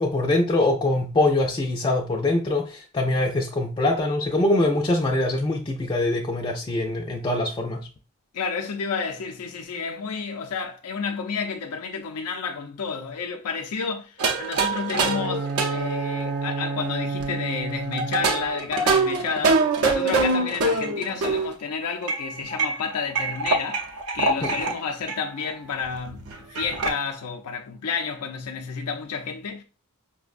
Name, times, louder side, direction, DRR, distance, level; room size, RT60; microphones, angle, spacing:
voice 1, 0.0-7.9 24.4-24.5, left 2 dB, 20° left, 0.3 m, -23 dB
voice 2, 8.3-29.6, left 5 dB, 85° left, 0.5 m, -31 dB
sound 1, 14.2-17.2 17.9-21.5 22.0-24.8 25.1-25.2 25.5-25.6 25.8-26.9, right 3 dB, 80° right, 0.6 m, -25 dB
Bowed string instrument, 14.9-18.6, right 4 dB, 50° right, 0.9 m, -31 dB
5.1 x 2.1 x 2.4 m
head